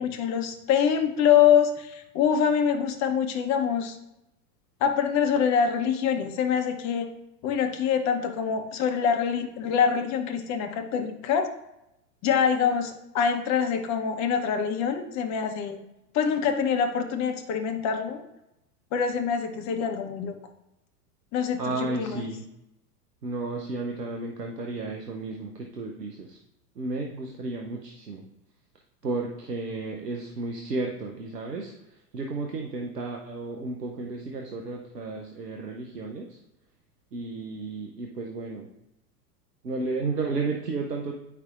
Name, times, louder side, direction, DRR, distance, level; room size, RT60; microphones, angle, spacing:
voice 1, 0.0-4.0 4.8-7.1 7.4-11.5 12.2-15.8 16.1-18.2 18.9-20.3 21.3-22.3, left 7 dB, 35° left, 6 dB, 1.0 m, -25 dB
voice 2, 21.6-22.4 23.2-26.4 26.8-28.2 29.0-36.4 37.1-38.7 39.6-41.1, right 3 dB, 90° right, 1 dB, 0.9 m, -33 dB
9.2 x 5.6 x 2.5 m, 0.88 s
figure-of-eight pair, 90°, 47 cm